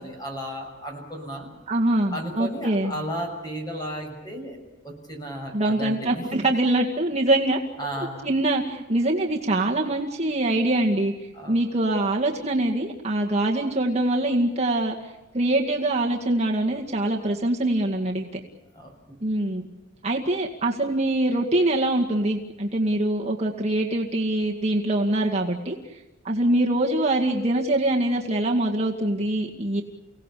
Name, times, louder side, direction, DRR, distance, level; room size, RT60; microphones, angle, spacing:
voice 1, 0.0-1.5 2.1-4.6 4.8-6.5 7.8-8.3 11.3-11.6 18.7-18.9, equal, 20° left, 3 dB, 6.8 m, -34 dB
voice 2, 1.7-2.9 5.5-7.6 8.0-11.1 11.5-18.3 19.2-19.6 20.0-25.8 26.2-29.8, right 1 dB, 30° right, 0 dB, 2.1 m, -24 dB
30.0 x 18.0 x 8.4 m, 1.1 s
head